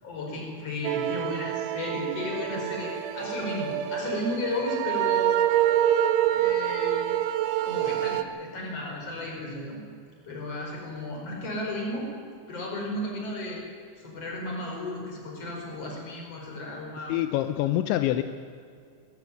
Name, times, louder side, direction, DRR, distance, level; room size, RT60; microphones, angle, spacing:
voice 1, 0.0-5.3 6.3-7.2 7.6-9.8 10.2-12.1 12.5-13.6 14.0-17.1, left 2 dB, 30° left, -1 dB, 5.5 m, -34 dB
sound 1, 0.8-8.2, right 11 dB, 80° right, 3.0 m, -26 dB
voice 2, 17.1-18.2, left 13 dB, 85° left, 10 dB, 2.7 m, -25 dB
22.0 x 13.0 x 9.3 m, 2.2 s
omnidirectional pair, 5.9 m